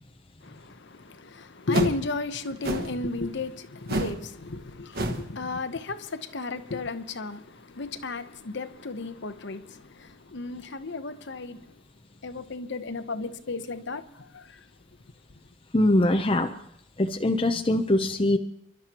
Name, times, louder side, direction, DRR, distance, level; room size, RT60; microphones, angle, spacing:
voice 1, 0.4-11.8 12.2-14.7, left 3 dB, 55° left, 0.9 m, -34 dB
sound 1, 1.7-2.0 2.6-3.0 3.9-4.2 4.5-4.7 4.9-5.3, right 1 dB, 50° right, 1.5 m, -28 dB
voice 2, 15.7-16.5 17.0-18.4, left 1 dB, 25° left, 0.6 m, -22 dB
29.5 x 12.0 x 2.9 m
head